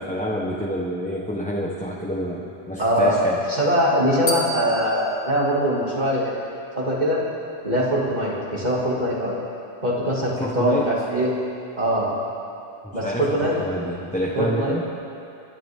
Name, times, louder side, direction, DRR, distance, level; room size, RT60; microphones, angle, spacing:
voice 1, 0.0-3.4 10.4-10.9 12.8-14.9, equal, 5° left, -5 dB, 1.2 m, -27 dB
voice 2, 2.8-3.2 3.5-6.4 6.8-7.2 7.6-9.4 9.8-11.3 11.8-12.1 12.9-13.5 14.3-14.7, equal, 35° right, -5 dB, 2.8 m, -22 dB
sound 1, 4.3-6.5, left 1 dB, 50° left, 1.8 m, -33 dB
28.0 x 11.5 x 3.8 m, 2.6 s
omnidirectional pair, 1.2 m